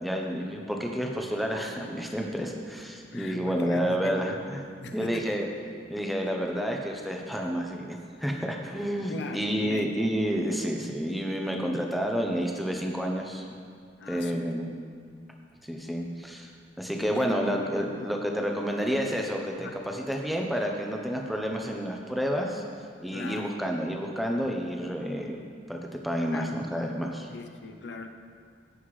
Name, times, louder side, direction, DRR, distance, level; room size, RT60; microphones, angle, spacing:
voice 1, 0.0-4.7 4.9-5.5 5.9-13.5 14.1-14.7 15.6-16.5 16.8-22.6 23.0-25.4 25.7-25.8 26.0-27.3, equal, ahead, 0 dB, 0.7 m, -30 dB
voice 2, 3.1-5.4 9.1-9.9 14.0-14.5 17.2-17.3 17.5-18.1 19.6-19.8 23.1-23.6 26.3-26.6 27.3-28.1, left 3 dB, 75° left, 5 dB, 0.6 m, -41 dB
15.5 x 5.8 x 3.2 m, 2.1 s
head